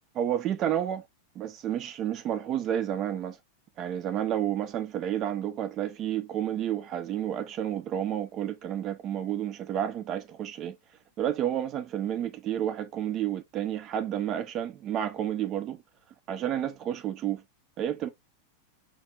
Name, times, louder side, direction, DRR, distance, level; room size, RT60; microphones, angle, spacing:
voice 1, 0.1-1.0 1.4-3.4 3.8-10.8 11.2-15.8 16.3-17.4 17.8-18.1, right 10 dB, 35° right, 0.3 m, -30 dB
4.2 x 2.8 x 2.3 m
figure-of-eight pair, 90°, 0 cm